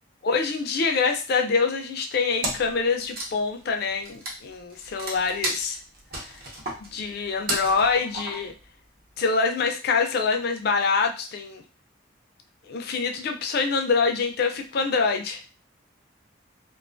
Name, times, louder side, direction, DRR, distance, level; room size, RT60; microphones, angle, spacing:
voice 1, 0.2-5.8 6.8-8.5 9.2-11.6 12.7-15.4, left 4 dB, 50° left, 5 dB, 0.4 m, -25 dB
Wood, 2.4-2.8 3.0-8.6, right 1 dB, 50° right, 0.7 m, -33 dB
2.4 x 2.3 x 2.4 m, 0.34 s
head